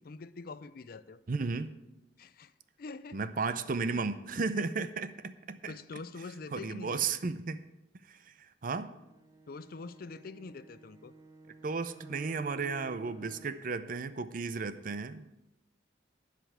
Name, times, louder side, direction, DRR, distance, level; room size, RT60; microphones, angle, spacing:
voice 1, 0.0-1.2 2.2-2.5 2.8-3.2 5.7-7.2 9.5-11.1, left 3 dB, 55° left, 15 dB, 0.4 m, -45 dB
voice 2, 1.3-1.7 3.1-5.7 6.5-7.7 8.0-8.9 11.6-15.3, right 4 dB, 50° right, 13 dB, 0.6 m, -34 dB
Bowed string instrument, 8.9-13.7, right 3 dB, 15° right, 0.9 m, -53 dB
11.0 x 5.1 x 8.4 m, 0.93 s
head